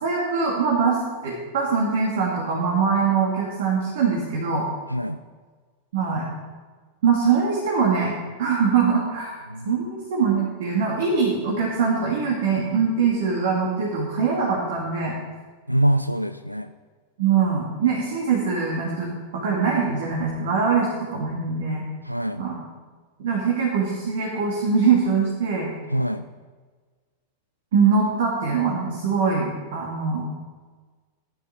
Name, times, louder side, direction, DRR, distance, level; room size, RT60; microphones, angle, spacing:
voice 1, 0.0-4.7 5.9-6.3 7.0-8.1 8.4-9.4 9.6-15.1 17.2-21.9 22.4-22.6 23.2-25.7 27.7-30.3, right 5 dB, 55° right, -2 dB, 2.5 m, -23 dB
voice 2, 9.5-9.9 15.7-16.7 22.0-22.5 25.9-26.3, right 1 dB, 90° right, 11 dB, 0.4 m, -24 dB
14.5 x 11.0 x 4.5 m, 1.4 s
figure-of-eight pair, 90°, 0 cm